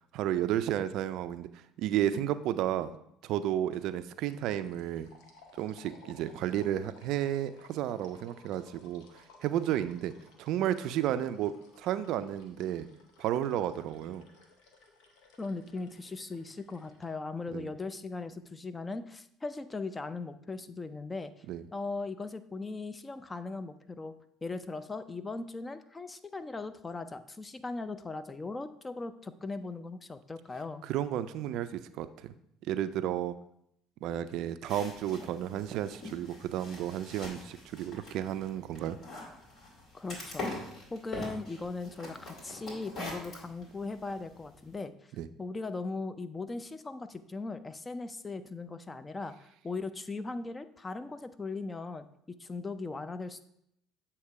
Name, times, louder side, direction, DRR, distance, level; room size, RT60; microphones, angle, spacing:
voice 1, 0.1-1.5 1.8-2.9 3.2-5.1 5.6-9.0 9.4-10.1 10.4-11.5 11.8-12.9 13.2-14.2 17.5-17.7 21.5-21.6 30.8-32.3 32.7-33.3 34.0-39.0 45.2-45.3, right 11 dB, 65° right, 12 dB, 0.3 m, -32 dB
sound 1, 3.7-3.9 4.2-17.1, left 3 dB, 75° left, 0.9 m, -59 dB
voice 2, 15.4-21.3 21.7-24.1 24.4-30.8 39.9-44.9 45.4-52.1 52.4-53.4, left 3 dB, 25° left, 12 dB, 0.4 m, -39 dB
sound 2, 34.7-44.7, left 2 dB, 55° left, 2.4 m, -44 dB
7.9 x 2.9 x 4.6 m, 0.74 s
hypercardioid pair, 65°, 0 cm